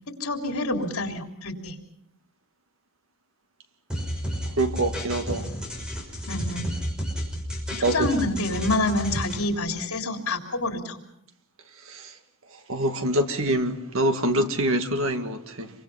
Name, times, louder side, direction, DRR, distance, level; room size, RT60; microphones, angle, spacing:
voice 1, 0.2-1.8 6.3-6.7 7.9-11.0, left 2 dB, 75° left, 3.6 m, -27 dB
sound 1, 3.9-9.4, equal, 5° right, 5.9 m, -31 dB
voice 2, 4.6-5.5 7.7-8.1 11.9-12.1 12.7-15.7, right 1 dB, 65° right, 2.1 m, -25 dB
28.0 x 24.0 x 5.7 m
head